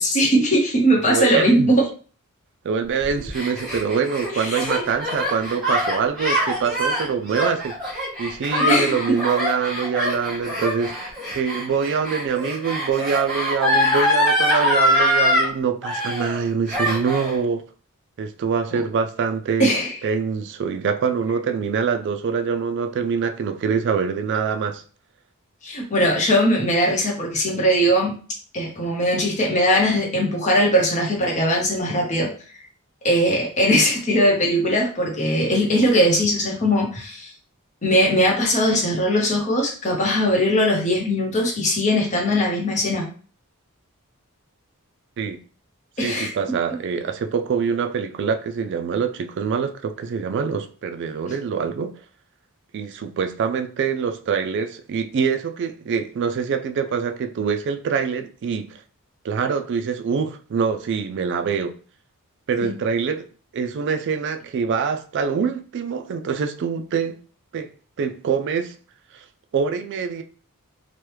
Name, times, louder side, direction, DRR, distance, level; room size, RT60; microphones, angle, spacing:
voice 1, 0.0-1.7 4.3-4.8 8.7-9.0 18.7-18.8 19.6-19.9 25.6-28.1 28.5-32.3 33.0-37.3 37.8-43.1 46.0-46.3 62.6-62.7, equal, 35° left, 0.8 m, -20 dB
voice 2, 1.0-1.7 2.6-7.7 8.2-17.6 18.2-19.7 20.0-24.8 45.2-45.4 46.0-51.9 52.7-58.8 59.2-61.7 62.5-63.3 63.5-67.2 67.5-67.7 68.0-68.7 69.1-69.2 69.5-70.2, right 6 dB, 50° right, 0.3 m, -24 dB
Gasp, 3.0-15.5 15.8-16.4 16.7-17.3, left 1 dB, ahead, 1.1 m, -23 dB
3.0 x 2.2 x 3.2 m
head